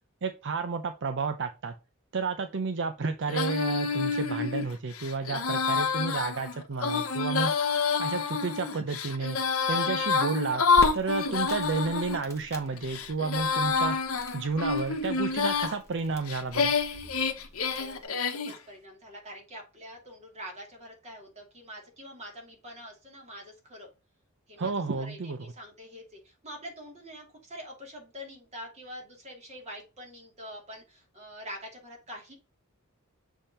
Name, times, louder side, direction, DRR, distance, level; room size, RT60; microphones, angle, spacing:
voice 1, 0.2-1.7 2.1-7.5 8.0-9.4 9.7-10.6 10.9-14.0 14.3-16.7 24.6-25.5, right 4 dB, 60° right, 8 dB, 0.6 m, -31 dB
Female singing, 3.3-12.2 12.8-15.7 16.3-18.6, left 5 dB, 80° left, 1.1 m, -28 dB
Crackle, 10.7-18.0, equal, 15° left, 1.4 m, -44 dB
voice 2, 17.8-23.9 24.5-32.3, equal, 30° right, 0 dB, 2.6 m, -45 dB
7.2 x 3.6 x 4.2 m, 0.30 s
head